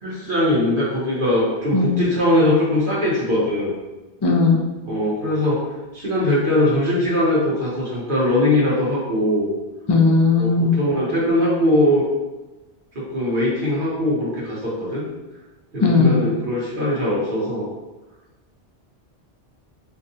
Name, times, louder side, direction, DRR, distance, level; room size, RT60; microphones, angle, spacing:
voice 1, 0.0-3.7 4.8-5.6 5.9-9.5 10.4-12.0 12.9-15.0 15.7-17.7, left 1 dB, 50° right, -6 dB, 1.3 m, -21 dB
voice 2, 4.2-4.6 9.9-10.8 15.8-16.2, left 4 dB, 35° left, 0 dB, 0.4 m, -17 dB
4.5 x 2.4 x 2.7 m, 1.1 s
omnidirectional pair, 1.2 m